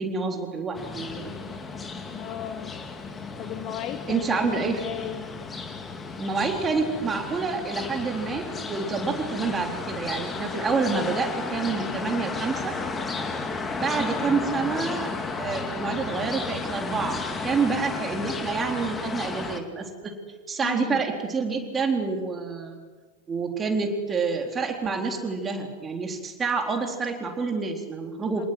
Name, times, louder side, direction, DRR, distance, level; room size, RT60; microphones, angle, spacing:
voice 1, 0.0-1.3 4.1-4.8 6.2-12.8 13.8-15.1 15.4-20.1 20.5-22.8 23.3-28.5, right 4 dB, 20° right, 3 dB, 3.9 m, -28 dB
sound 1, 0.8-19.6, left 4 dB, 15° left, 2.5 m, -33 dB
voice 2, 2.1-2.7 3.4-5.3 13.8-14.2 20.6-21.0 28.3-28.4, left 11 dB, 35° left, 9 dB, 1.5 m, -35 dB
27.0 x 19.0 x 7.9 m, 1.4 s
figure-of-eight pair, 90°, 0 cm